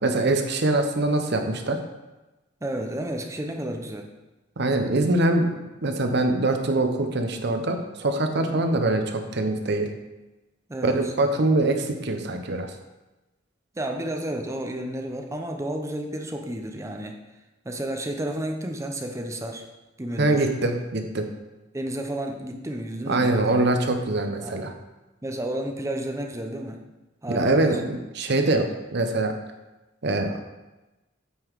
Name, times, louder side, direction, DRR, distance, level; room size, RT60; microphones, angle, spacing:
voice 1, 0.0-1.8 4.6-9.9 10.8-12.7 20.2-21.3 23.1-24.7 27.3-29.3 30.0-30.4, right 2 dB, 60° right, 5 dB, 0.8 m, -23 dB
voice 2, 2.6-4.1 8.5-8.7 10.7-11.1 13.8-17.2 17.6-19.6 20.0-20.4 21.7-23.5 24.4-24.6 25.2-26.8 27.2-27.7, right 1 dB, 15° right, 4 dB, 0.6 m, -31 dB
8.4 x 3.9 x 4.6 m, 1.1 s
head